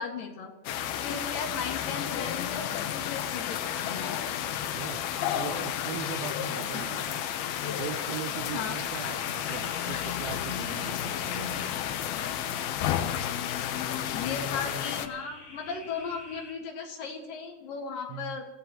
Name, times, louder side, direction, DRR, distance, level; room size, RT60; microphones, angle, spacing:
voice 1, 0.0-4.2 6.7-6.8 8.5-8.8 14.1-18.5, left 5 dB, 70° left, 3.4 m, -36 dB
sound 1, 0.7-15.1, left 10 dB, 85° left, 2.8 m, -32 dB
voice 2, 4.7-7.2 7.6-11.7 18.1-18.4, right 13 dB, 85° right, 2.5 m, -40 dB
sound 2, 8.4-16.5, left 2 dB, 30° left, 1.7 m, -51 dB
27.5 x 16.0 x 3.0 m
omnidirectional pair, 4.2 m